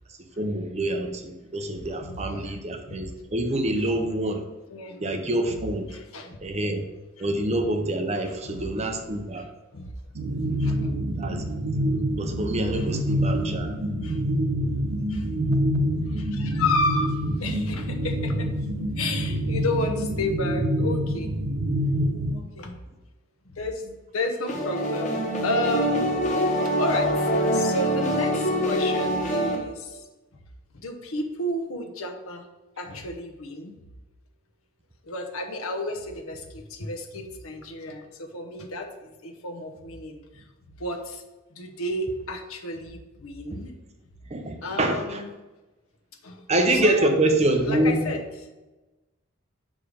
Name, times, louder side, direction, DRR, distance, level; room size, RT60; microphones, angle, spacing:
voice 1, 0.4-4.4 5.0-5.8 6.4-6.8 7.2-9.5 10.3-10.4 11.2-11.4 12.2-13.7 44.3-45.2 46.5-48.0, right 1 dB, 30° right, 5 dB, 0.7 m, -26 dB
voice 2, 1.7-2.6 2.9-3.0 4.7-5.1 5.4-5.6 5.9-6.4 7.2-7.3 8.2-8.7 9.4-9.9 10.6-10.9 12.3-12.4 12.7-12.9 13.2-13.4 14.0-14.2 15.1-15.4 16.1-21.3 22.3-22.8 23.4-26.1 26.8-27.2 27.5-30.0 30.7-32.4 32.8-33.8 35.0-40.4 40.8-41.2 41.5-43.7 44.6-45.4 46.2-46.5 46.7-47.1 47.6-48.5, left 2 dB, 80° left, 5 dB, 0.9 m, -32 dB
sound 1, 10.2-22.4, equal, 90° right, 0.8 m, -26 dB
sound 2, 24.5-29.6, equal, 35° left, 0.9 m, -24 dB
5.5 x 4.9 x 5.1 m, 1.1 s
head